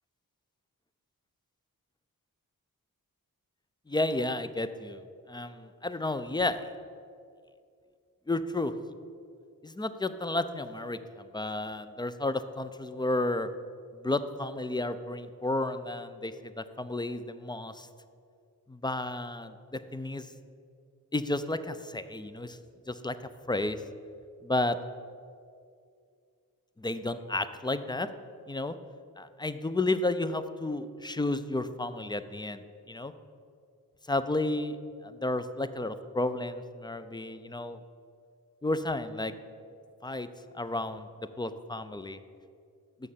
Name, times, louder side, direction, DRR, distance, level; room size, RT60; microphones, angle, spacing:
voice 1, 3.9-6.7 8.3-8.7 9.6-13.5 14.0-17.9 18.7-20.3 21.1-22.6 22.9-23.2 23.5-23.8 24.4-24.8 26.8-28.1 28.5-28.7 29.2-32.6 32.9-33.1 34.1-34.8 35.0-37.8 38.6-39.3 40.0-40.3 40.5-41.1 41.4-42.2, left 2 dB, 10° left, 11 dB, 0.5 m, -32 dB
6.6 x 6.3 x 7.2 m, 2.3 s
cardioid pair, 45°, 36 cm